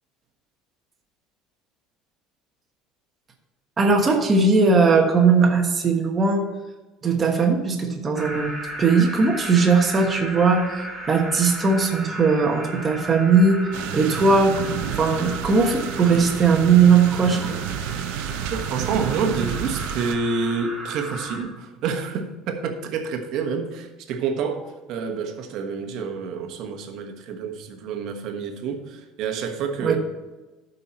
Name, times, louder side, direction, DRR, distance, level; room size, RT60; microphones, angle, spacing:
voice 1, 3.8-6.4 7.0-8.5 8.8-13.6 13.9-17.6 29.8-30.0, right 4 dB, 20° right, 2 dB, 1.2 m, -19 dB
sound 1, 8.1-21.4, right 1 dB, 5° right, 1.6 m, -35 dB
sound 2, 13.7-20.1, right 9 dB, 80° right, 0.7 m, -31 dB
voice 2, 18.5-30.0, right 5 dB, 55° right, 5 dB, 1.2 m, -28 dB
13.0 x 5.5 x 4.4 m, 1.1 s
cardioid pair, 160°, 0 cm